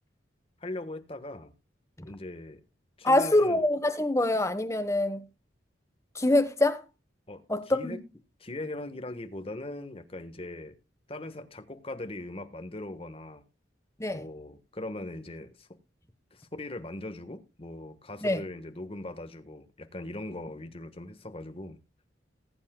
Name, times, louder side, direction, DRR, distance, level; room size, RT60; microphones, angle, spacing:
voice 1, 0.6-1.5 2.0-2.6 3.0-3.6 7.3-8.0 8.4-10.7 11.1-13.4 14.1-15.7 16.3-21.8, left 2 dB, 30° left, 1.3 m, -40 dB
voice 2, 3.0-5.2 6.1-6.8 7.5-8.0 14.0-14.2 18.2-18.4, left 1 dB, 15° left, 1.2 m, -25 dB
19.5 x 8.4 x 2.2 m
head